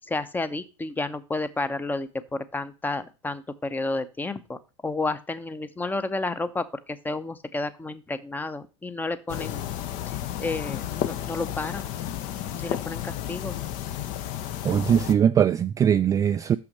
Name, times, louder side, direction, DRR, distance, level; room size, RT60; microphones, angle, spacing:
voice 1, 0.0-9.6 10.1-11.9 12.5-13.6, left 2 dB, 10° left, 0.8 m, -31 dB
sound 1, 9.3-15.1, left 11 dB, 50° left, 0.8 m, -32 dB
voice 2, 14.6-16.6, right 8 dB, 20° right, 0.3 m, -21 dB
6.5 x 5.9 x 6.5 m
hypercardioid pair, 100°, 16 cm